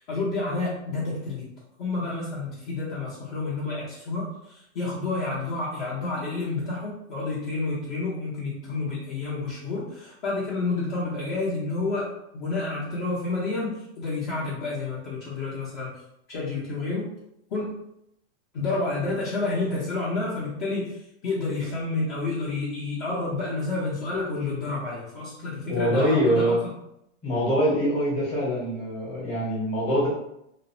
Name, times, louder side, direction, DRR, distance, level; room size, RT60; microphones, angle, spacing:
voice 1, 0.1-1.5 1.8-15.9 16.3-17.0 17.5-17.7 18.5-26.5, left 3 dB, 45° left, -6 dB, 0.8 m, -29 dB
voice 2, 25.7-26.6 27.2-30.1, equal, 15° left, -7 dB, 0.9 m, -24 dB
2.6 x 2.0 x 2.6 m, 0.80 s
supercardioid pair, 155°, 35 cm